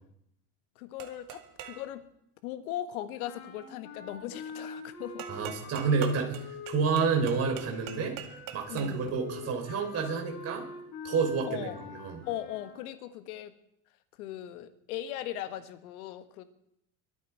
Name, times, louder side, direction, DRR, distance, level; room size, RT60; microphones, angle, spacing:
voice 1, 0.7-2.0 2.4-5.3 8.7-9.1 11.5-11.8 12.3-13.5 14.2-16.4, left 12 dB, 85° left, 11 dB, 1.5 m, -39 dB
sound 1, 1.0-1.9 5.2-9.1, right 11 dB, 50° right, 2.3 m, -44 dB
sound 2, 3.2-12.8, left 5 dB, 55° left, 4.3 m, -45 dB
voice 2, 5.3-8.2 8.5-10.7 11.0-12.2, right 5 dB, 35° right, 2 dB, 3.8 m, -29 dB
22.5 x 9.8 x 4.7 m, 0.76 s
supercardioid pair, 130°, 43 cm